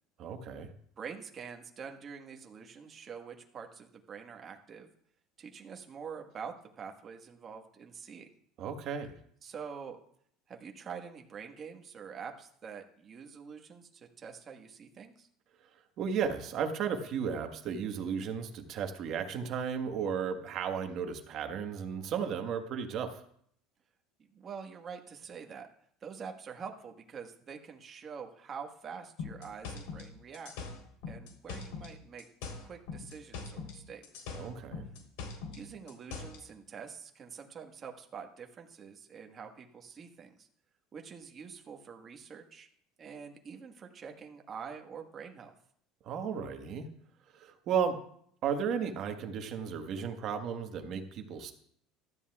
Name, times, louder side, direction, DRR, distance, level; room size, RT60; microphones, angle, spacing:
voice 1, 0.2-0.7 8.6-9.2 16.0-23.2 34.3-34.8 46.0-46.9 47.3-48.0 48.4-51.5, right 7 dB, 45° right, 6 dB, 1.4 m, -34 dB
voice 2, 1.0-4.9 5.4-8.3 9.4-10.0 10.5-15.3 24.2-25.7 26.0-30.5 31.1-32.2 32.6-34.3 35.5-40.5 40.9-42.7 43.0-45.5, right 6 dB, 30° right, 3 dB, 1.5 m, -46 dB
sound 1, 29.2-31.9 32.2-33.8 34.0-36.4, left 5 dB, 85° left, 3.6 m, -41 dB
15.5 x 12.5 x 2.4 m, 0.65 s
cardioid pair, 135°, 0 cm